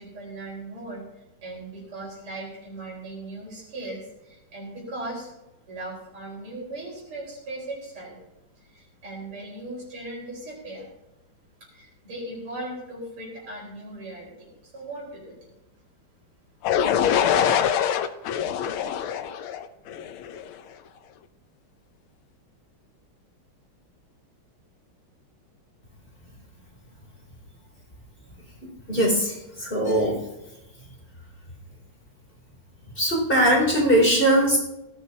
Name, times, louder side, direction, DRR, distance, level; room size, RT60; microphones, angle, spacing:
voice 1, 0.0-5.3 5.7-8.2 8.6-10.9 11.6-15.4, right 2 dB, 90° right, -2 dB, 5.7 m, -38 dB
sound 1, 16.6-20.5, left 9 dB, 85° left, 1.7 m, -24 dB
voice 2, 28.9-30.2 33.0-34.6, right 1 dB, 25° left, -2 dB, 3.3 m, -20 dB
18.5 x 13.5 x 2.8 m, 0.97 s
omnidirectional pair, 2.3 m